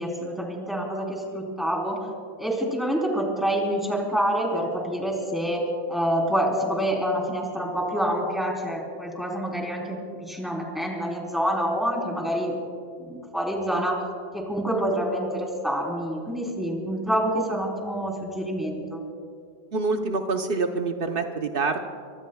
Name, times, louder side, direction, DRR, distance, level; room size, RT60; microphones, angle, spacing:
voice 1, 0.0-2.0 2.4-5.6 5.9-12.5 13.0-13.9 14.3-19.0, equal, ahead, -1 dB, 3.4 m, -27 dB
voice 2, 19.7-21.8, right 4 dB, 80° right, 5 dB, 0.5 m, -26 dB
24.5 x 23.0 x 2.3 m, 2.2 s
omnidirectional pair, 2.1 m